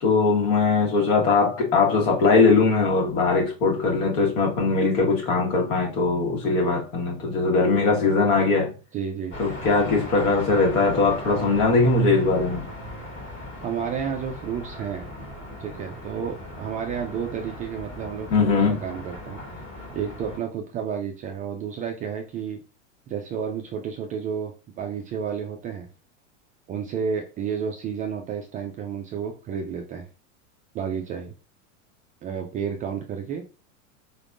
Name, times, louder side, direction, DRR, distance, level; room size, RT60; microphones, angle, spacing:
voice 1, 0.0-8.7 9.4-12.6 18.3-18.8, left 4 dB, 65° left, 1.7 m, -20 dB
voice 2, 8.9-9.4 13.6-15.1 15.6-19.4 19.9-22.6 23.1-25.9 26.7-30.1 30.7-31.3 32.2-33.4, right 7 dB, 20° right, 0.3 m, -31 dB
sound 1, 9.3-20.4, left 1 dB, 30° left, 1.5 m, -38 dB
4.2 x 3.4 x 2.5 m
hypercardioid pair, 105°, 41 cm